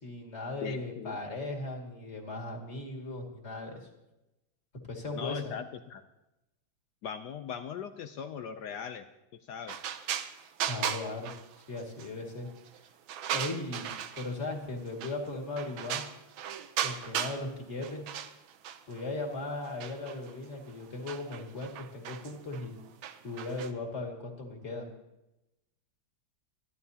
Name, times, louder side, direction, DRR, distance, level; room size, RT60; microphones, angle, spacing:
voice 1, 0.0-3.9 4.9-5.5 10.7-11.3 11.7-12.5 13.3-16.0 16.8-18.1 18.9-22.8 23.2-24.9, left 2 dB, 30° left, 1 dB, 2.3 m, -37 dB
voice 2, 0.6-1.2 5.1-6.0 7.0-9.0 9.5-9.8, left 7 dB, 70° left, 9 dB, 1.0 m, -39 dB
sound 1, 9.7-12.1 12.5-14.5 15.0-15.3 15.6-17.4 17.7-19.0 19.6-23.7, right 9 dB, 75° right, 1.5 m, -37 dB
27.5 x 11.0 x 2.8 m, 0.94 s
omnidirectional pair, 2.3 m